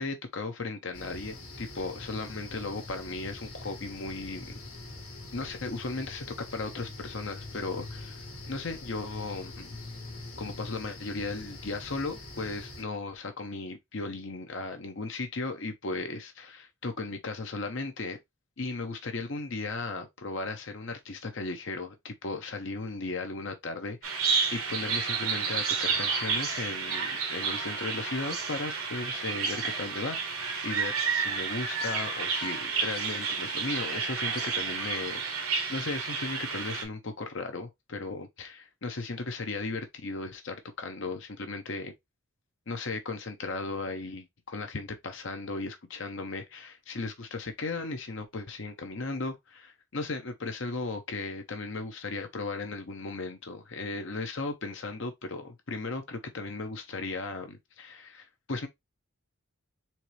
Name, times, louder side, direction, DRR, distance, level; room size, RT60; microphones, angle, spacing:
voice 1, 0.0-4.6 5.3-9.8 10.4-18.2 18.6-41.9 42.7-44.2 44.5-58.7, left 3 dB, 55° left, 0.8 m, -36 dB
sound 1, 0.9-12.8, left 2 dB, 80° left, 1.6 m, -44 dB
Bird vocalization bird call bird song, 24.0-36.8, right 5 dB, 75° right, 1.4 m, -31 dB
4.4 x 3.2 x 3.1 m
head